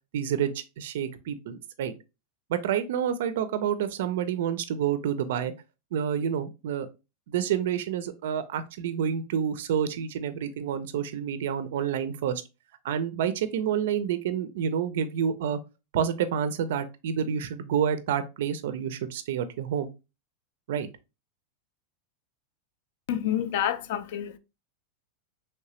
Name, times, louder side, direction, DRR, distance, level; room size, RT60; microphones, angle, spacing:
voice 1, 0.1-1.9 2.5-5.5 5.9-6.9 7.3-12.4 12.8-15.6 15.9-19.9 20.7-20.9, right 8 dB, 70° right, 0.4 m, -28 dB
voice 2, 23.1-24.4, left 10 dB, 60° left, 0.4 m, -28 dB
3.1 x 2.8 x 3.0 m
supercardioid pair, 155°, 0 cm